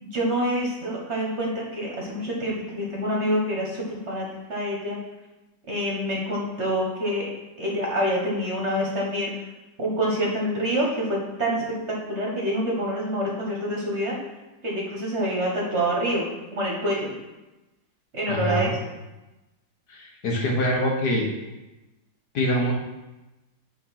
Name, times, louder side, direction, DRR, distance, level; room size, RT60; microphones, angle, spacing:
voice 1, 0.0-5.0 5.7-7.3 7.6-9.3 9.8-11.6 12.1-14.2 14.6-17.2 18.1-18.9, equal, 40° right, -3 dB, 1.5 m, -26 dB
voice 2, 18.3-18.7 19.9-21.3 22.3-22.7, equal, 60° left, 0 dB, 1.7 m, -24 dB
9.3 x 3.8 x 5.7 m, 1.1 s
omnidirectional pair, 2.0 m